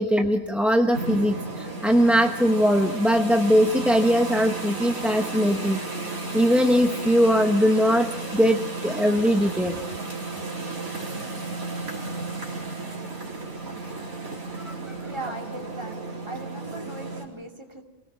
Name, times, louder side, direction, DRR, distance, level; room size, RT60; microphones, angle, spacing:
voice 1, 0.0-5.8 6.1-9.8 14.6-14.9, equal, ahead, 3 dB, 0.8 m, -21 dB
sound 1, 0.9-17.3, right 3 dB, 75° right, 4.4 m, -34 dB
voice 2, 15.0-16.0 16.3-17.8, right 2 dB, 20° right, 2 dB, 2.7 m, -38 dB
27.0 x 18.5 x 6.1 m, 0.94 s
omnidirectional pair, 1.5 m